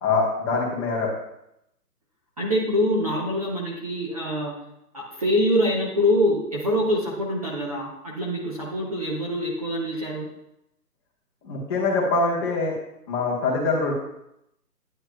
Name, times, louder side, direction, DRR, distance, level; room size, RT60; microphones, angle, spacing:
voice 1, 0.0-1.1 11.4-12.7 13.1-13.9, left 3 dB, 15° left, -4 dB, 1.1 m, -24 dB
voice 2, 2.4-4.5 4.9-10.3, equal, 25° right, -4 dB, 0.7 m, -24 dB
9.9 x 7.9 x 2.2 m, 0.82 s
figure-of-eight pair, 150°, 49 cm